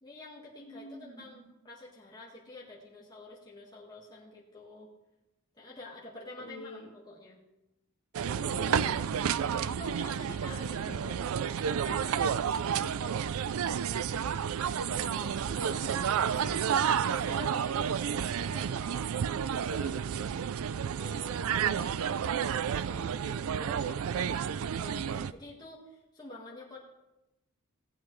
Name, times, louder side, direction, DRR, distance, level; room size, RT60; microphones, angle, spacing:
voice 1, 0.0-4.9 5.6-7.4 9.5-10.6 11.8-13.2 14.1-14.7 15.5-15.7 17.0-20.0 21.0-24.3 24.6-26.8, left 2 dB, 20° left, -5 dB, 1.7 m, -49 dB
voice 2, 0.6-1.5 6.4-6.9 8.2-9.4 10.4-11.1 14.8-16.9, equal, 55° left, -1 dB, 2.4 m, -46 dB
Boarding passengers on the plane in Hong Kong Airport, 8.1-25.3, right 8 dB, 70° right, 0.4 m, -31 dB
16.5 x 8.5 x 3.2 m, 0.99 s
head